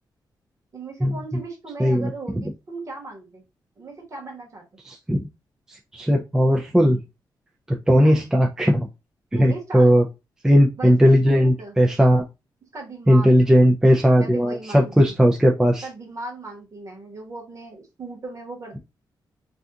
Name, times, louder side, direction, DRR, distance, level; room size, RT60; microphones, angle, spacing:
voice 1, 0.7-3.4 3.8-4.6 8.0-8.2 9.3-9.9 10.8-10.9 11.3-11.7 12.7-13.4 14.1-15.1 15.8-18.8, right 3 dB, 40° right, 0 dB, 1.2 m, -37 dB
voice 2, 1.8-2.4 4.8-5.2 5.7-7.0 7.7-8.9 9.3-10.0 10.4-12.3 13.1-15.9, equal, 5° right, 0 dB, 0.4 m, -17 dB
2.7 x 2.4 x 3.4 m, 0.25 s
wide cardioid pair, 150°, 8 cm